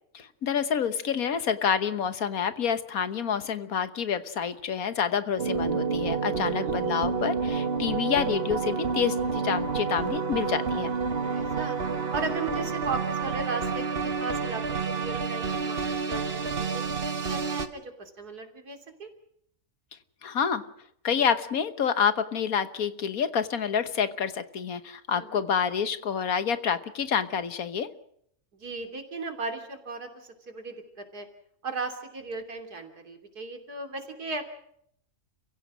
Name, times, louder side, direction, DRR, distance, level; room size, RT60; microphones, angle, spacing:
voice 1, 0.2-10.9 20.2-20.6 21.0-27.9, left 7 dB, 70° left, 12 dB, 1.6 m, -28 dB
sound 1, 5.4-17.7, right 5 dB, 40° right, 1.6 m, -29 dB
voice 2, 11.2-11.8 12.1-19.1 25.1-25.4 28.6-31.3 31.6-34.4, right 3 dB, 80° right, 6 dB, 3.6 m, -36 dB
30.0 x 16.5 x 6.2 m, 0.69 s
omnidirectional pair, 1.6 m